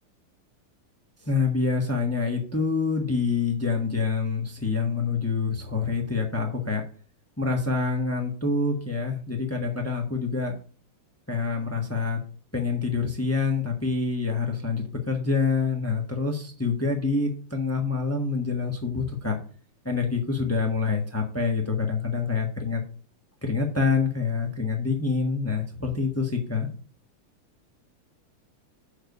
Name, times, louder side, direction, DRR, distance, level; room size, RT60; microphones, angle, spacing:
voice 1, 1.2-6.8 7.4-10.5 11.3-12.2 12.5-19.4 19.8-22.8 23.4-26.7, left 4 dB, 10° left, 1 dB, 0.7 m, -26 dB
6.7 x 4.5 x 6.6 m, 0.41 s
omnidirectional pair, 2.4 m